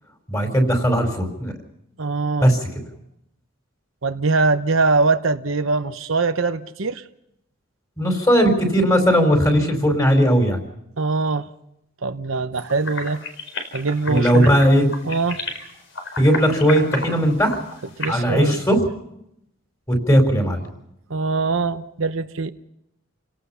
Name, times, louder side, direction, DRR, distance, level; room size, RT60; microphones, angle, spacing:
voice 1, 0.3-1.5 2.4-2.6 8.0-10.6 14.1-14.9 16.2-17.6 18.1-18.8 19.9-20.6, equal, 15° left, 5 dB, 4.5 m, -17 dB
voice 2, 2.0-2.5 4.0-7.0 11.0-11.5 12.0-13.2 13.7-14.5 15.0-15.4 18.0-18.5 21.1-22.5, right 3 dB, 70° right, 9 dB, 1.0 m, -22 dB
sound 1, 12.6-18.1, left 3 dB, 60° left, 4.6 m, -32 dB
29.5 x 18.0 x 5.7 m, 0.79 s
head